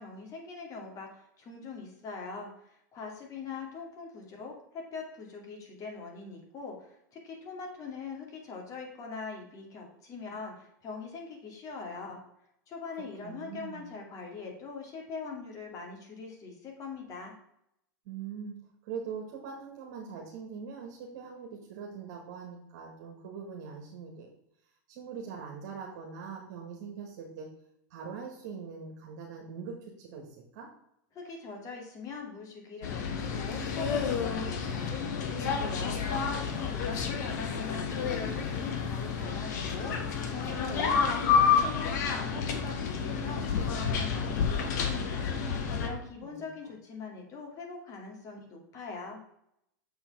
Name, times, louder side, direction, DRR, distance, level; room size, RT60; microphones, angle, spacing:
voice 1, 0.0-12.2 12.7-17.3 31.1-36.0 36.5-45.3 45.7-49.2, left 4 dB, 35° left, 1 dB, 2.4 m, -42 dB
voice 2, 13.2-13.9 18.0-18.5 18.8-24.3 24.9-27.5 27.9-30.7 46.2-46.3, right 6 dB, 65° right, 0 dB, 1.7 m, -42 dB
sound 1, 32.8-45.9, left 6 dB, 70° left, 1.4 m, -30 dB
6.9 x 4.5 x 5.4 m, 0.77 s
hypercardioid pair, 120°, 10 cm